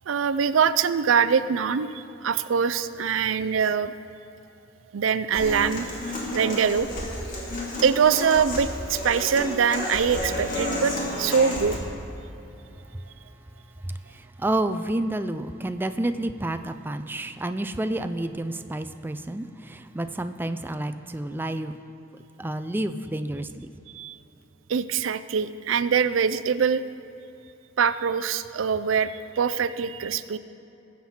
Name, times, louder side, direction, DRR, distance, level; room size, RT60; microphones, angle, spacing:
voice 1, 0.1-3.9 4.9-6.9 7.8-11.8 23.9-24.2 24.7-26.8 27.8-30.4, right 6 dB, 85° right, 13 dB, 0.5 m, -23 dB
Human voice / Acoustic guitar, 5.4-11.8, left 1 dB, 45° left, 2.4 m, -31 dB
voice 2, 14.4-21.7 22.4-23.7, right 1 dB, 10° right, 9 dB, 0.4 m, -29 dB
20.0 x 7.4 x 4.4 m, 2.9 s
head